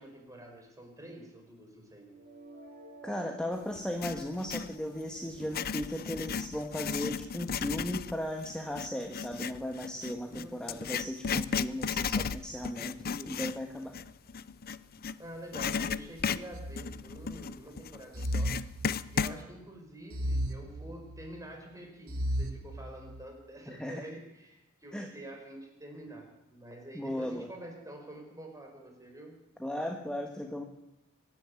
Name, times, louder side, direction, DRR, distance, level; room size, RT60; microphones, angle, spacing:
voice 1, 0.0-2.2 10.3-11.0 15.2-18.5 19.1-29.4, right 1 dB, 15° right, 2 dB, 5.2 m, -47 dB
sound 1, 2.0-8.0, right 3 dB, 35° right, 7.8 m, -55 dB
voice 2, 3.0-13.9 23.7-24.0 24.9-25.1 26.9-27.5 29.6-30.6, left 1 dB, 5° left, 3 dB, 1.5 m, -36 dB
Writing, 3.8-4.7 5.3-15.2 15.5-19.4, left 6 dB, 45° left, 0.6 m, -35 dB
sound 2, 16.5-17.5 18.1-19.4 20.1-21.4 22.1-23.2, equal, 70° right, 2.2 m, -35 dB
24.5 x 11.0 x 9.8 m, 0.88 s
head